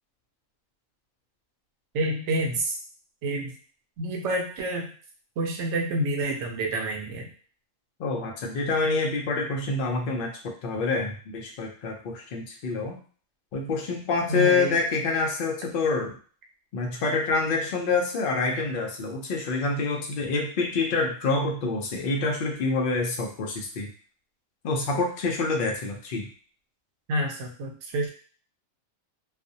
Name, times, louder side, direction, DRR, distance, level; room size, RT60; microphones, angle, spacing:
voice 1, 1.9-2.8 3.2-3.6 4.0-4.9 5.4-7.3 14.3-14.8 27.1-28.1, right 1 dB, 65° right, 1 dB, 0.8 m, -28 dB
voice 2, 8.0-13.0 13.5-16.2 16.7-23.9 24.6-26.3, left 3 dB, 80° left, 1 dB, 0.4 m, -27 dB
2.4 x 2.0 x 2.6 m, 0.42 s
omnidirectional pair, 1.4 m